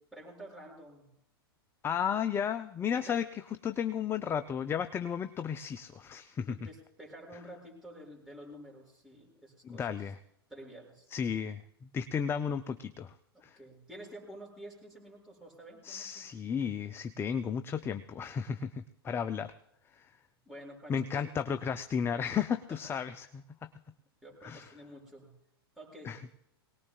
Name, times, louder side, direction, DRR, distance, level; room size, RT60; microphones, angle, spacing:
voice 1, 0.1-1.1 3.1-3.2 6.4-10.0 10.5-11.1 13.3-16.2 20.4-21.2 22.7-22.9 24.2-25.3 25.8-26.1, right 1 dB, 5° right, -4 dB, 6.5 m, -50 dB
voice 2, 1.8-6.6 9.6-10.2 11.1-13.1 13.4-13.6 15.8-19.5 19.9-20.1 20.9-23.7 24.4-24.7 26.0-26.2, left 7 dB, 15° left, 11 dB, 0.5 m, -34 dB
22.5 x 18.5 x 2.4 m, 0.77 s
hypercardioid pair, 105°, 13 cm